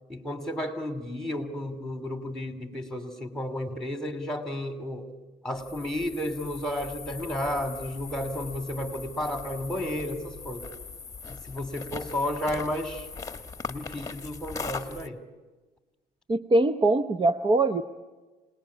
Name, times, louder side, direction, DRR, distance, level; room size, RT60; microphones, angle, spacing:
voice 1, 0.1-5.1 5.4-10.7 11.3-13.1 13.7-15.2, left 1 dB, 5° left, 9 dB, 2.9 m, -32 dB
sound 1, 5.6-15.1, left 4 dB, 20° left, 1.4 m, -40 dB
voice 2, 16.3-17.8, right 2 dB, 30° right, 10 dB, 0.9 m, -22 dB
27.0 x 19.5 x 8.7 m, 1.2 s
cardioid pair, 110°, 17 cm